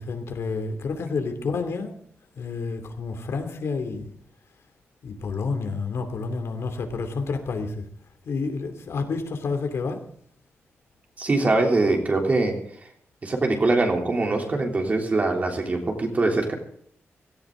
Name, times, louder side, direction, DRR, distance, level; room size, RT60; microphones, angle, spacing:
voice 1, 0.0-2.0 2.4-4.1 5.0-7.9 8.3-10.0, left 4 dB, 70° left, 6 dB, 2.7 m, -29 dB
voice 2, 11.2-12.9 13.2-16.5, right 2 dB, 35° right, 2 dB, 3.3 m, -23 dB
17.5 x 17.0 x 3.8 m, 0.62 s
wide cardioid pair, 170°, 5 cm